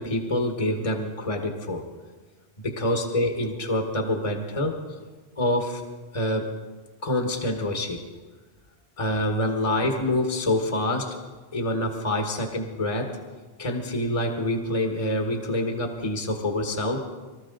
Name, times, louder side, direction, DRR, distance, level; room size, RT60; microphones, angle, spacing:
voice 1, 0.0-1.8 2.6-4.8 5.4-5.8 6.1-6.5 7.0-8.0 9.0-11.2 11.5-13.1 13.6-17.0, left 1 dB, 30° left, 3 dB, 1.5 m, -26 dB
24.0 x 14.0 x 3.9 m, 1.3 s
omnidirectional pair, 1.1 m